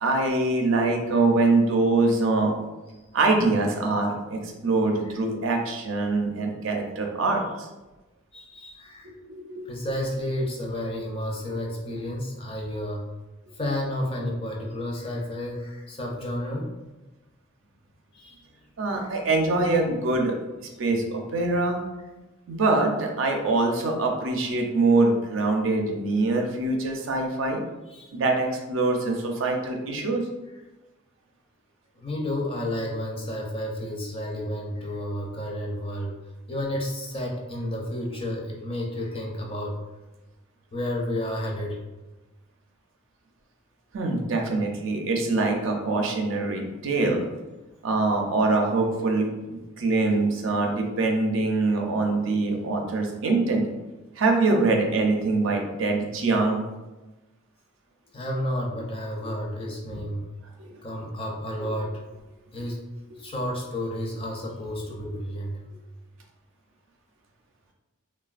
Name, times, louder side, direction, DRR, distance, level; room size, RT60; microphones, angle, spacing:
voice 1, 0.0-2.5 3.1-7.7 9.3-9.4 18.8-20.4 20.6-21.8 22.5-27.6 28.1-30.3 43.9-47.3 47.8-53.6 54.2-56.6 60.6-60.7 61.6-61.7, right 3 dB, 70° right, 2 dB, 0.5 m, -24 dB
voice 2, 8.3-9.1 9.7-13.0 13.5-16.7 18.1-18.4 18.9-19.2 27.9-28.1 32.0-36.1 36.5-39.7 40.7-41.8 58.1-60.3 60.8-61.9 62.5-62.9 63.2-65.6, left 1 dB, 25° left, -1 dB, 0.4 m, -31 dB
3.2 x 2.2 x 2.4 m, 1.1 s
head